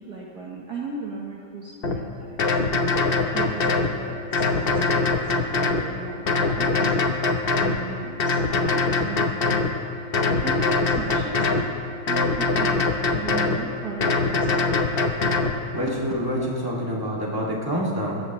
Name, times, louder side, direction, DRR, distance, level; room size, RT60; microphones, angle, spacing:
voice 1, 0.0-2.9 3.3-7.0 7.6-9.3 9.9-10.1 10.4-11.7 12.0-14.7 15.9-16.0 16.3-16.8, right 3 dB, 55° right, -2 dB, 1.6 m, -36 dB
sound 1, 1.8-2.0 2.4-3.9 4.3-5.9 6.3-7.8 8.2-9.7 10.1-11.7 12.1-13.6 14.0-15.5, left 3 dB, 55° left, 0.6 m, -22 dB
voice 2, 15.7-18.2, equal, 10° right, -4 dB, 2.2 m, -27 dB
24.5 x 14.5 x 3.1 m, 2.5 s
omnidirectional pair, 2.3 m